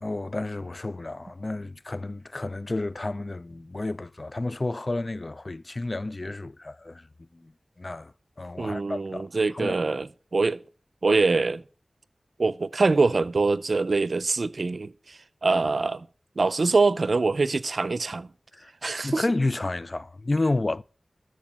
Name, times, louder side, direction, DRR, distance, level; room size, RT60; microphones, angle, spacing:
voice 1, 0.0-7.0 7.4-7.5 7.8-8.1 8.4-9.3 9.5-9.8 18.5-18.7 19.0-20.8, left 2 dB, 45° left, 0.4 m, -30 dB
voice 2, 8.6-10.6 11.0-11.6 12.4-16.1 16.4-18.3 18.8-19.2, right 3 dB, 70° right, 0.6 m, -24 dB
13.5 x 4.7 x 8.7 m
cardioid pair, 40°, 0 cm